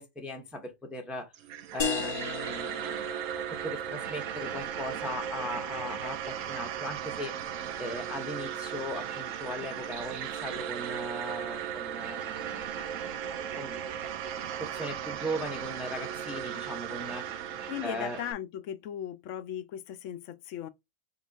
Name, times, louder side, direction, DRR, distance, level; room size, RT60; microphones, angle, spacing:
voice 1, 0.0-1.3 1.7-3.1 3.5-7.4 7.8-12.8 13.6-13.8 14.4-17.3 17.8-18.2, equal, ahead, 0.7 m, -38 dB
sound 1, 1.3-18.3, right 9 dB, 80° right, 1.0 m, -36 dB
sound 2, 1.8-7.1, left 5 dB, 55° left, 0.4 m, -38 dB
voice 2, 17.7-20.7, left 11 dB, 75° left, 0.9 m, -37 dB
4.0 x 3.9 x 2.3 m
omnidirectional pair, 1.4 m